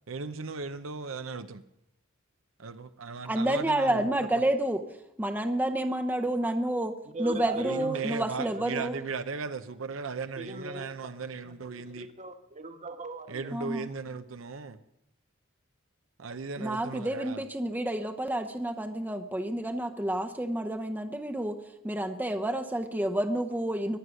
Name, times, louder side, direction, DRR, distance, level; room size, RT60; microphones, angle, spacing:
voice 1, 0.1-1.6 2.6-4.4 7.6-12.1 13.3-14.8 16.2-17.4, right 4 dB, 80° right, 0.7 m, -37 dB
voice 2, 3.3-4.8 5.2-6.9 7.2-9.0 13.5-13.9 16.6-21.6 21.8-24.0, right 1 dB, 10° right, 0.7 m, -29 dB
voice 3, 7.1-8.0 8.4-8.7 10.4-11.1 12.0-13.4, right 2 dB, 35° right, 1.3 m, -39 dB
22.0 x 8.3 x 6.4 m
head